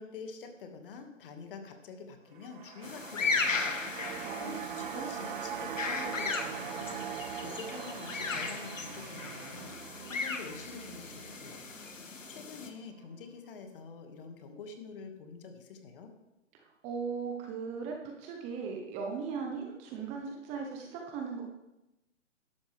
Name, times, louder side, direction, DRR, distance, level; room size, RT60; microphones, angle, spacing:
voice 1, 0.0-3.7 4.1-9.8 10.1-11.6 12.0-16.1, left 5 dB, 45° left, 5 dB, 2.1 m, -47 dB
sound 1, 2.3-12.7 13.1-13.2, right 9 dB, 40° right, 0.5 m, -42 dB
sound 2, 2.8-12.7, left 4 dB, 90° left, 1.9 m, -36 dB
voice 2, 4.2-4.6 4.9-5.2 16.8-21.4, right 5 dB, 20° right, 2 dB, 1.0 m, -38 dB
12.5 x 11.5 x 3.5 m, 0.95 s
hypercardioid pair, 145°, 38 cm